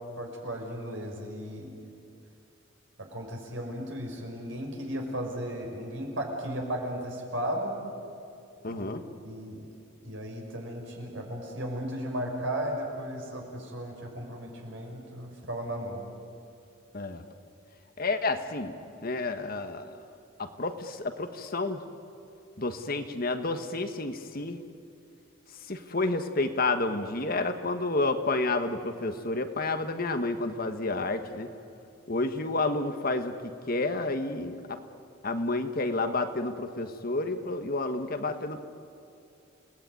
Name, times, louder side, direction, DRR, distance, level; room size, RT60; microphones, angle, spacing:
voice 1, 0.2-1.7 3.0-7.8 8.7-8.8 9.2-9.7 10.0-16.0, equal, 70° right, 1 dB, 5.7 m, -35 dB
voice 2, 8.6-9.0 16.9-17.2 18.0-18.8 19.0-19.9 20.4-21.8 22.6-24.6 25.7-31.5 32.1-34.8 35.2-38.6, left 2 dB, 45° left, 7 dB, 1.5 m, -30 dB
29.5 x 18.0 x 9.3 m, 2.7 s
head